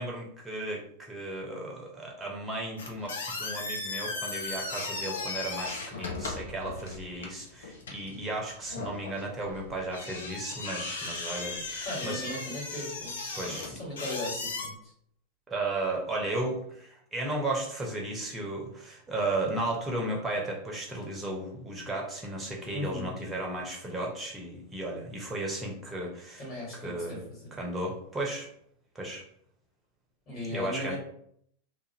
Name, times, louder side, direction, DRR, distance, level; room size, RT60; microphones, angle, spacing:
voice 1, 0.0-12.2 13.3-13.8 15.5-26.4 26.7-27.2 27.6-28.5 28.9-29.2 30.5-31.0, right 2 dB, 15° right, -1 dB, 0.8 m, -34 dB
sound 1, 2.8-14.7, left 3 dB, 65° left, 0.5 m, -37 dB
voice 2, 11.8-13.2 13.4-14.9 22.7-23.1 26.4-27.5 30.3-31.0, left 1 dB, 30° left, -6 dB, 1.5 m, -37 dB
2.5 x 2.4 x 2.9 m, 0.68 s
figure-of-eight pair, 90°, 0 cm